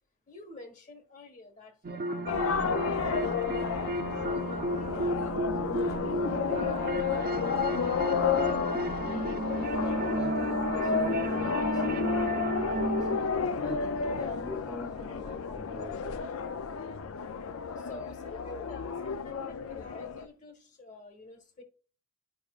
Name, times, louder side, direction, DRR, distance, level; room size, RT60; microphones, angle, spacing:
voice 1, 0.3-5.3 5.7-6.0 6.4-8.2 17.8-21.6, left 2 dB, 35° left, 1.4 m, -48 dB
sound 1, 1.8-13.2, right 2 dB, 45° right, 0.6 m, -33 dB
sound 2, 2.3-20.3, left 6 dB, 70° left, 0.5 m, -31 dB
voice 2, 9.7-16.2, left 2 dB, 15° left, 0.8 m, -42 dB
10.5 x 5.0 x 2.4 m
head